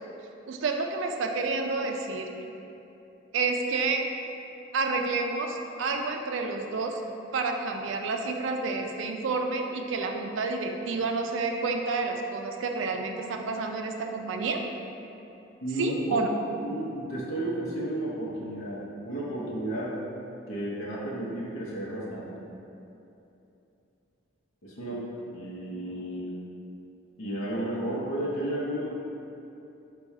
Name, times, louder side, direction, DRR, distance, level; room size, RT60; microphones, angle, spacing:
voice 1, 0.5-2.3 3.3-4.0 4.7-7.0 7.3-14.6 15.8-16.3, right 3 dB, 70° right, 4 dB, 0.4 m, -29 dB
voice 2, 15.6-16.3 16.6-19.9 20.5-22.4 24.6-26.3 27.2-28.9, right 1 dB, 85° left, -6 dB, 0.8 m, -33 dB
4.1 x 2.3 x 4.7 m, 2.8 s
head